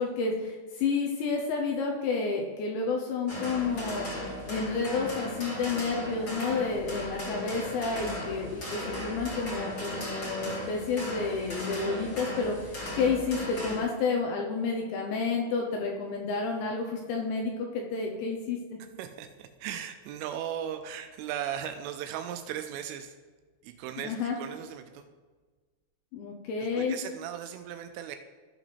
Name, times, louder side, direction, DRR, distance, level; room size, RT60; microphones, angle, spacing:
voice 1, 0.0-4.1 4.5-18.8 24.0-24.4 26.1-27.0, left 4 dB, 75° left, 1 dB, 2.8 m, -30 dB
sound 1, 3.3-13.8, left 1 dB, 40° left, 1.6 m, -37 dB
voice 2, 7.9-8.2 19.0-23.2 23.6-25.1 26.6-28.2, right 10 dB, 85° right, 7 dB, 3.0 m, -37 dB
15.0 x 6.0 x 3.4 m, 1.4 s
omnidirectional pair, 5.8 m